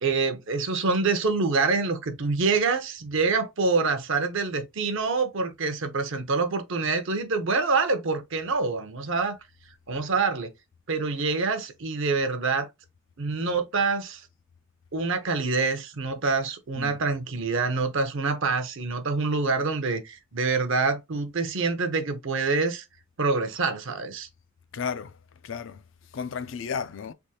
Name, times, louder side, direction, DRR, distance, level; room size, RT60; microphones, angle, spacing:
voice 1, 0.0-9.4 9.9-10.5 10.9-12.7 13.2-14.3 14.9-22.8 23.2-24.3, right 4 dB, 60° right, 0.6 m, -26 dB
voice 2, 24.7-25.1 25.4-25.8 26.1-27.1, left 6 dB, 60° left, 0.4 m, -33 dB
3.5 x 3.0 x 2.8 m
head